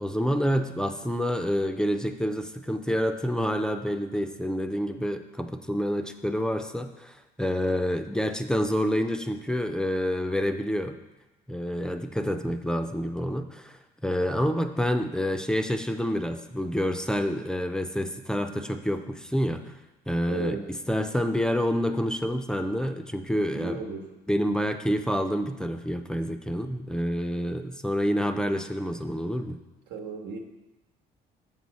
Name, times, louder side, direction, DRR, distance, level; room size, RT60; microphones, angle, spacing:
voice 1, 0.0-11.0 11.5-19.7 20.1-20.6 20.9-23.8 24.3-29.6, equal, 5° left, 7 dB, 0.4 m, -28 dB
voice 2, 20.3-20.7 23.5-24.0 29.9-30.4, right 5 dB, 80° right, 3 dB, 1.2 m, -35 dB
7.3 x 6.1 x 4.1 m, 1.0 s
cardioid pair, 110°, 17 cm